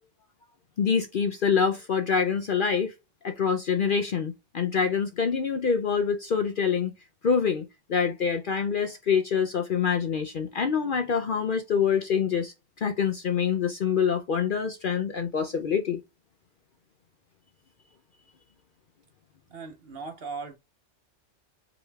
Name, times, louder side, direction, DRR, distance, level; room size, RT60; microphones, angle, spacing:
voice 1, 0.8-2.9 3.2-6.9 7.2-12.5 12.8-16.0, left 6 dB, 55° left, 0.7 m, -26 dB
voice 2, 19.5-20.5, right 4 dB, 55° right, 1.1 m, -38 dB
4.9 x 4.8 x 2.3 m
omnidirectional pair, 1.3 m